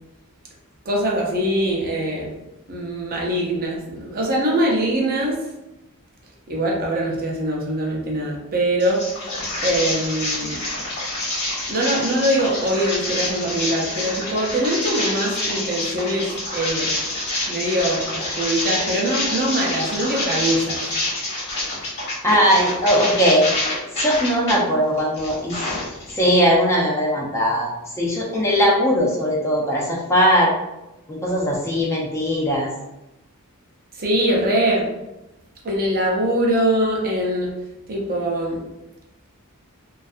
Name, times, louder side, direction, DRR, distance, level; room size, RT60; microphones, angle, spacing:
voice 1, 0.9-2.3 2.7-5.3 6.5-9.0 9.6-10.6 11.7-16.9 17.5-20.8 34.0-34.9 35.6-37.5 37.9-38.6, right 1 dB, 40° right, -2 dB, 0.6 m, -22 dB
sound 1, 8.8-24.6 25.0-26.3, left 2 dB, 50° left, 1.1 m, -27 dB
voice 2, 22.2-23.5 24.0-25.6 26.1-27.7 27.9-30.5 31.1-32.7, equal, 10° left, -4 dB, 0.4 m, -19 dB
2.5 x 2.3 x 2.4 m, 0.95 s
head